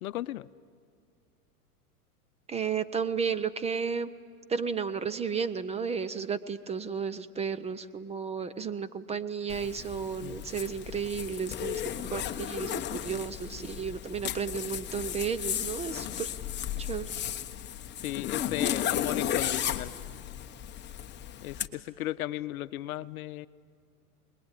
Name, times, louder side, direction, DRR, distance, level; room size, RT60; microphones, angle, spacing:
voice 1, 0.0-0.5 10.2-10.4 18.0-19.9 21.4-23.5, left 14 dB, 65° left, 14 dB, 0.9 m, -35 dB
voice 2, 2.5-4.1 4.5-11.8 12.1-16.3 16.8-17.1, right 6 dB, 15° right, 14 dB, 0.6 m, -33 dB
Zipper (clothing), 9.5-21.7, left 10 dB, 25° left, 1.1 m, -34 dB
25.5 x 21.0 x 9.8 m, 2.1 s
hypercardioid pair, 115°, 45 cm